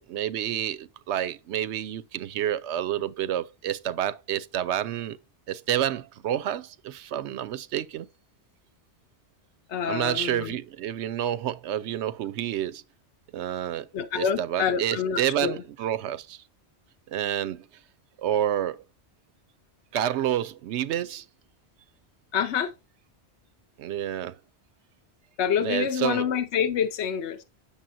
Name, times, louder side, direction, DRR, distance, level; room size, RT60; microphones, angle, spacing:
voice 1, 0.1-5.2 5.5-8.1 9.9-12.8 13.3-13.9 14.1-16.4 17.1-17.7 18.2-18.8 19.9-21.3 23.8-24.4 25.6-26.2, right 11 dB, 85° right, 0.9 m, -29 dB
voice 2, 9.7-10.6 13.9-15.6 22.3-22.7 25.4-27.4, left 8 dB, 80° left, 1.0 m, -27 dB
8.9 x 6.8 x 2.6 m
omnidirectional pair, 1.1 m